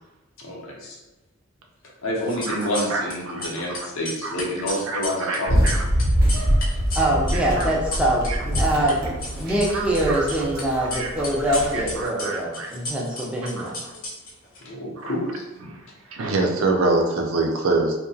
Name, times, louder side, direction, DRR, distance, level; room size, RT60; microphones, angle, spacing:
voice 1, 0.4-1.0 2.0-5.7 14.6-15.4, equal, 85° left, -3 dB, 0.7 m, -28 dB
sound 1, 2.2-3.1 3.4-8.9 9.2-10.6 10.9-14.6, left 2 dB, 45° left, 0.6 m, -33 dB
voice 2, 2.9-3.6 4.2-4.3 4.9-5.0 5.3-5.8 7.6-7.7 8.3-8.4 9.7-10.3 10.7-11.1 11.7-12.7 13.6-13.7 15.0-15.1 15.6-15.7 16.1-17.9, right 3 dB, 85° right, 1 dB, 0.5 m, -25 dB
sound 2, 5.5-12.0, equal, 45° right, 0.7 m, -24 dB
voice 3, 6.9-9.0 9.3-13.7, right 1 dB, 5° right, -4 dB, 0.4 m, -24 dB
2.7 x 2.1 x 2.6 m, 1.1 s
head